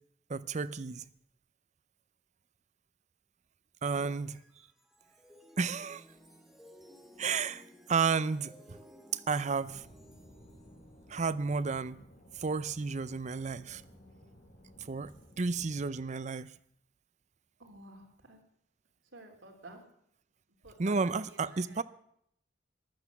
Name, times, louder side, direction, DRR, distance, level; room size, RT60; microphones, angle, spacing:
voice 1, 0.3-1.0 3.8-4.3 5.6-6.0 7.2-7.6 7.9-8.8 9.3-9.8 11.1-12.0 12.4-13.8 14.9-16.5 20.8-21.8, right 4 dB, 40° right, 0.6 m, -32 dB
sound 1, 4.1-13.4, equal, ahead, 2.0 m, -58 dB
sound 2, 9.6-15.7, equal, 50° left, 3.6 m, -57 dB
voice 2, 17.6-18.4 19.1-19.8 20.5-21.8, right 2 dB, 90° right, 3.0 m, -52 dB
14.0 x 11.0 x 7.1 m
head